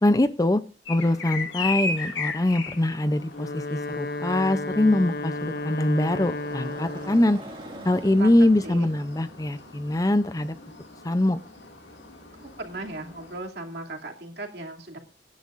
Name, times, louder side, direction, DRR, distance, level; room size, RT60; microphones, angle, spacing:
voice 1, 0.0-0.6 0.9-7.4 7.8-10.5 11.0-11.4, left 1 dB, 20° left, 12 dB, 0.5 m, -23 dB
sound 1, 0.9-13.4, left 4 dB, 75° left, 2.2 m, -38 dB
Motorcycle, 2.1-13.5, right 1 dB, 25° right, 2.0 m, -48 dB
Wind instrument woodwind instrument, 3.2-7.4, left 2 dB, 50° left, 1.0 m, -33 dB
voice 2, 12.6-15.0, right 2 dB, 60° right, 1 dB, 2.6 m, -37 dB
25.0 x 10.5 x 2.5 m, 0.37 s
head